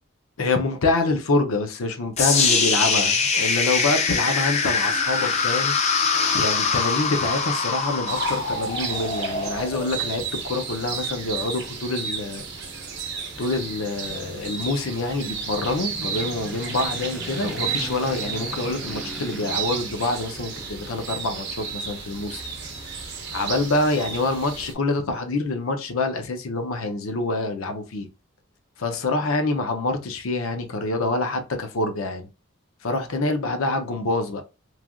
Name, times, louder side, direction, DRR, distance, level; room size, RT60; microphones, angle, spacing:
voice 1, 0.4-5.8 6.3-12.4 13.4-22.4 23.3-28.1 28.8-32.3 32.8-34.4, left 2 dB, 80° left, 0.6 m, -26 dB
sound 1, 2.2-10.2, left 5 dB, 30° left, 0.4 m, -23 dB
sound 2, 8.1-24.7, right 6 dB, 55° right, 0.7 m, -33 dB
sound 3, 13.6-21.6, equal, ahead, 0.7 m, -40 dB
3.2 x 2.4 x 2.3 m
head